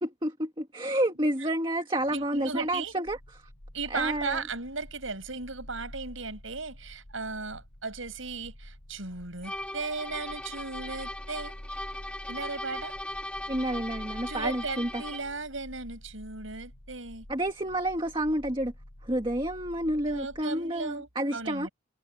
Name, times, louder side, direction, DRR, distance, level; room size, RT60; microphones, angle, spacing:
voice 1, 0.0-3.5 3.9-4.4 13.5-15.0 17.3-18.7 19.0-21.7, right 1 dB, 25° right, 1.9 m, -30 dB
voice 2, 2.1-2.9 3.7-11.5 12.3-12.9 14.3-17.3 20.0-21.7, right 4 dB, 80° right, 6.0 m, -36 dB
sound 1, 3.0-20.4, left 1 dB, 90° left, 3.7 m, -48 dB
sound 2, 9.4-15.4, left 1 dB, 5° left, 3.1 m, -39 dB
head